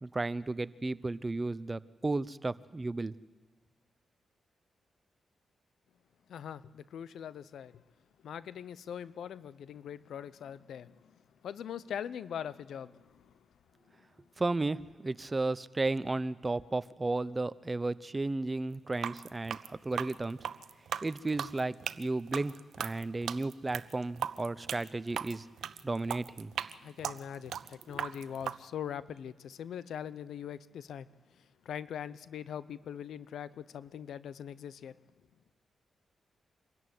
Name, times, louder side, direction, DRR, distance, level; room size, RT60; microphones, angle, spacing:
voice 1, 0.0-3.1 14.4-20.4 21.0-25.4 25.8-26.5 27.9-28.0, right 2 dB, 30° right, 0.7 m, -34 dB
voice 2, 6.3-7.7 8.2-11.1 11.4-13.3 26.8-31.1 31.7-35.0, left 9 dB, 80° left, 0.7 m, -42 dB
sound 1, 18.9-28.6, right 9 dB, 80° right, 0.6 m, -38 dB
25.0 x 14.0 x 9.5 m
cardioid pair, 55°, 0 cm